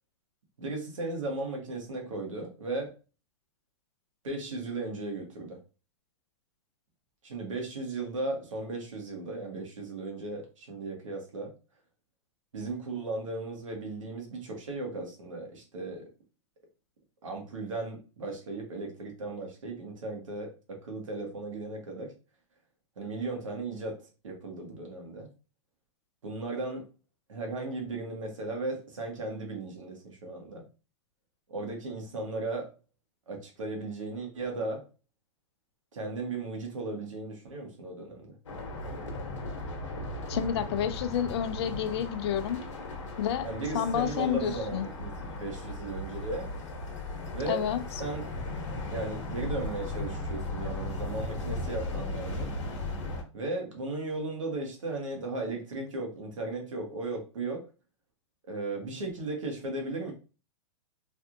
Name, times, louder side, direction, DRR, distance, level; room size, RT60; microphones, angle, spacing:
voice 1, 0.6-3.0 4.2-5.6 7.2-11.5 12.5-16.0 17.2-22.1 23.0-25.3 26.2-26.9 27.3-30.6 31.5-32.7 33.3-34.9 35.9-38.3 43.4-46.5 47.3-47.7 48.0-48.3 48.9-52.5 53.3-57.7 58.4-60.1, right 2 dB, 85° right, 1.3 m, -36 dB
sound 1, 38.5-53.2, left 2 dB, 70° left, 1.0 m, -37 dB
voice 2, 40.3-42.6 43.2-43.5 43.7-44.9 47.5-47.8, left 9 dB, 55° left, 0.4 m, -29 dB
3.3 x 2.6 x 2.5 m
hypercardioid pair, 130°, 16 cm